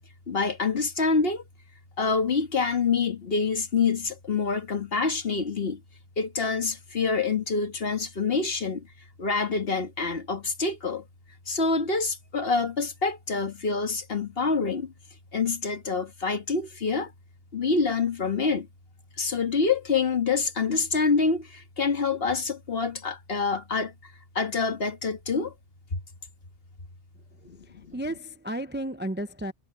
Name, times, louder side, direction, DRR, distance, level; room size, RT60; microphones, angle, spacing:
voice 1, 0.3-1.4 2.0-5.8 6.2-8.8 9.2-11.0 11.5-14.9 15.3-17.1 17.5-18.7 19.2-25.5 25.9-26.0 27.5-27.6 27.8-27.9, left 4 dB, 55° left, 1.8 m, -26 dB
voice 2, 27.5-29.5, right 1 dB, 10° right, 0.5 m, -33 dB
omnidirectional pair, 1.2 m